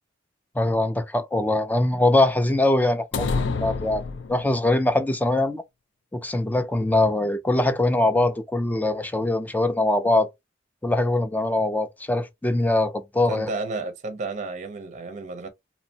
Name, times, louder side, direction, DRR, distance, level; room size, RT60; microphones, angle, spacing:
voice 1, 0.6-4.0 4.3-5.6 6.1-10.3 10.8-13.5, left 2 dB, 10° left, 0.4 m, -22 dB
sound 1, 3.1-4.7, left 4 dB, 75° left, 0.4 m, -28 dB
voice 2, 13.3-15.5, right 3 dB, 40° right, 0.6 m, -32 dB
2.8 x 2.1 x 2.7 m
head